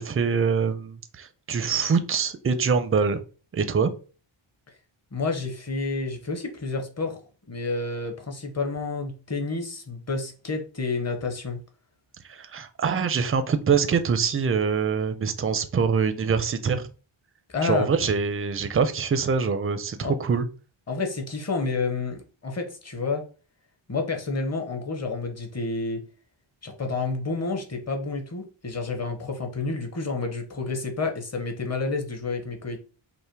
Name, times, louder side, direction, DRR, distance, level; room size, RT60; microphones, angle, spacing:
voice 1, 0.0-3.2 3.5-3.9 12.3-16.9 17.6-20.5, right 5 dB, 30° right, 10 dB, 0.4 m, -24 dB
voice 2, 5.1-7.2 7.5-11.6 17.5-17.9 20.0-20.1 20.9-23.2 23.9-26.0 26.6-32.8, left 3 dB, 30° left, 4 dB, 0.9 m, -29 dB
5.6 x 2.1 x 4.5 m, 0.36 s
wide cardioid pair, 175°, 50 cm